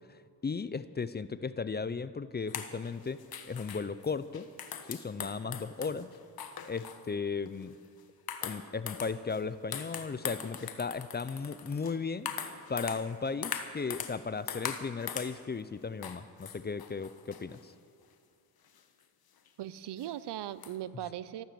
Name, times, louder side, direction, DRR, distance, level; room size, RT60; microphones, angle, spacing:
voice 1, 0.0-3.2 3.4-4.5 4.9-6.1 6.7-7.7 8.4-12.3 12.7-17.7, left 5 dB, 25° left, 15 dB, 0.5 m, -36 dB
sound 1, 2.5-7.1 7.5-7.7 8.3-9.4 9.7-14.2 14.5-15.4 16.0-17.6 18.8-18.9 19.5-19.6 20.0-20.1 20.6-20.7, left 7 dB, 60° left, 1.3 m, -41 dB
voice 2, 5.2-5.6 19.6-21.4, right 12 dB, 75° right, 16 dB, 0.7 m, -40 dB
13.5 x 12.0 x 7.7 m, 2.4 s
cardioid pair, 85°, 41 cm